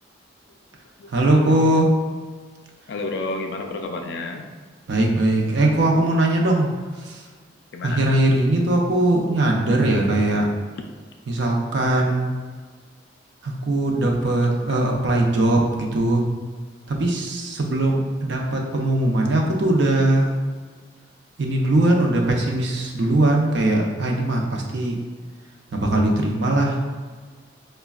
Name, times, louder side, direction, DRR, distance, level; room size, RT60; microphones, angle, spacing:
voice 1, 1.1-1.9 4.9-6.7 7.0-7.2 7.8-10.5 11.3-12.3 13.4-16.2 16.9-20.3 21.4-25.0 25.7-26.8, right 1 dB, 65° right, 0 dB, 0.5 m, -20 dB
voice 2, 2.9-4.5 7.7-8.0, left 2 dB, 60° left, 4 dB, 0.4 m, -30 dB
4.9 x 2.2 x 2.3 m, 1.5 s
head